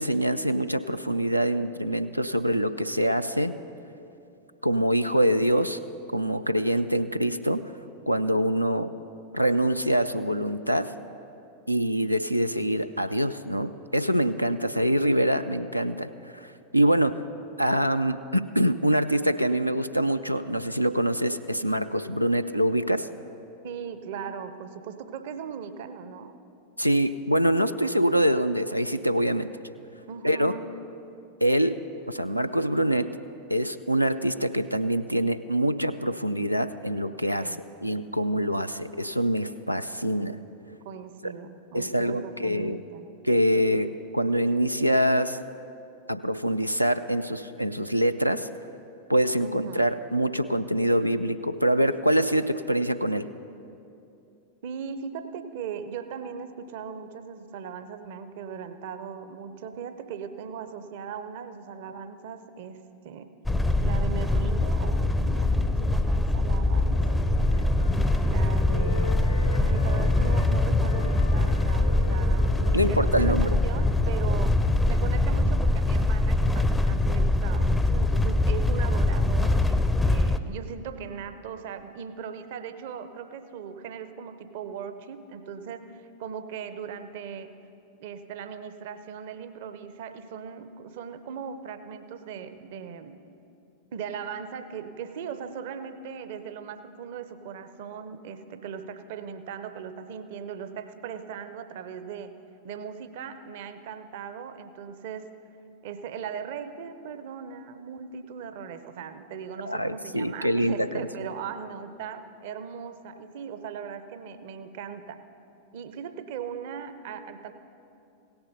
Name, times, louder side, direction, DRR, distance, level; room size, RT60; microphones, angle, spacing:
voice 1, 0.0-3.5 4.6-5.8 6.1-7.6 8.1-8.9 9.3-10.9 11.7-16.1 16.3-17.2 17.6-23.1 26.8-29.5 30.2-30.5 31.4-31.8 32.1-33.1 33.5-37.6 37.8-40.4 41.2-41.3 41.7-42.8 43.2-45.4 46.1-48.5 49.1-53.3 72.7-73.6 109.7-111.1, right 1 dB, 90° right, 9 dB, 0.3 m, -25 dB
voice 2, 23.6-26.3 30.1-30.7 37.3-37.6 40.8-43.1 49.4-49.9 54.6-63.3 63.8-67.2 68.2-69.2 69.6-87.5 88.0-93.2 93.9-102.4 102.6-105.3 105.8-115.3 115.7-117.5, right 7 dB, 50° right, 10 dB, 0.6 m, -39 dB
sound 1, 63.5-80.4, left 2 dB, 5° left, 0.5 m, -23 dB
sound 2, 66.7-70.5 70.8-75.2, left 2 dB, 85° left, 2.1 m, -41 dB
17.0 x 7.0 x 5.4 m, 2.7 s
figure-of-eight pair, 90°, 0 cm